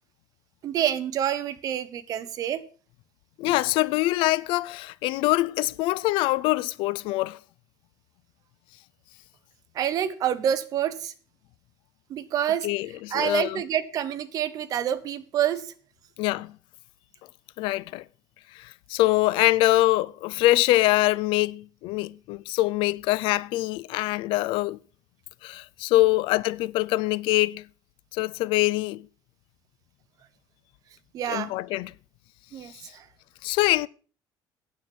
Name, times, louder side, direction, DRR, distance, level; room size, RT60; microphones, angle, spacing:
voice 1, 0.6-2.6 9.7-11.1 12.1-12.7 13.1-15.7 31.1-31.5 32.5-33.0, right 10 dB, 45° right, 0.9 m, -27 dB
voice 2, 3.4-7.4 12.6-13.6 16.2-16.5 17.6-18.0 18.5-24.8 25.4-27.7 28.1-29.1 31.3-31.9 32.7-32.9 33.4-33.9, left 18 dB, 85° left, 0.4 m, -24 dB
9.5 x 8.3 x 6.0 m
cardioid pair, 170°, 9 cm